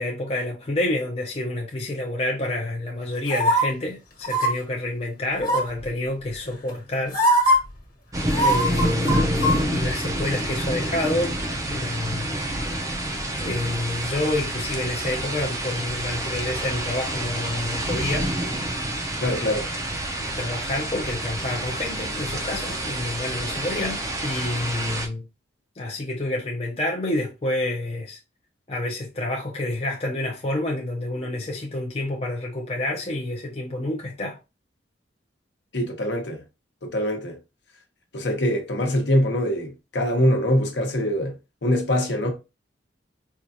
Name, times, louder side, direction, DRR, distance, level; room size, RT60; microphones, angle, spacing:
voice 1, 0.0-7.2 8.4-12.3 13.4-18.3 20.4-25.3 25.8-28.2 28.7-34.4, left 1 dB, 35° left, 0.6 m, -28 dB
sound 1, 3.3-3.6 4.2-4.5 5.4-5.8 6.7-6.8 7.1-7.6 8.3-9.6 9.9-10.0, right 1 dB, 50° left, 1.3 m, -20 dB
sound 2, 8.1-25.1, right 1 dB, 20° right, 0.5 m, -28 dB
voice 2, 19.2-19.7 35.7-36.4 36.8-37.4 38.1-42.3, left 1 dB, 65° left, 1.0 m, -23 dB
4.6 x 2.4 x 2.6 m
head